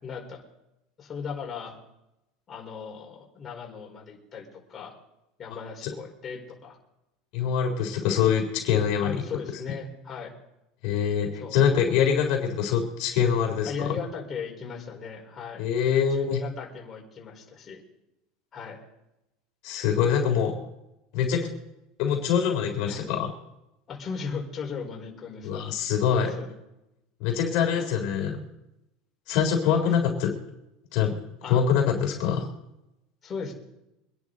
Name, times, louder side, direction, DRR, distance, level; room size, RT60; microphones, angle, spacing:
voice 1, 0.0-0.4 1.0-1.7 2.5-4.9 5.4-6.8 9.0-10.3 11.4-11.6 13.6-15.6 16.1-17.8 18.5-18.8 22.8-23.1 23.9-25.6 26.1-26.5 27.7-28.0 29.7-29.8 31.4-31.6 33.2-33.5, left 5 dB, 25° left, -1 dB, 4.8 m, -37 dB
voice 2, 7.3-9.1 10.8-13.9 15.6-16.4 19.6-20.6 21.1-21.5 22.0-23.3 25.4-26.3 27.2-28.4 29.3-30.4 30.9-31.2 31.5-32.5, left 8 dB, 60° left, 1 dB, 3.7 m, -24 dB
25.5 x 11.0 x 4.1 m, 0.89 s
supercardioid pair, 150°, 0 cm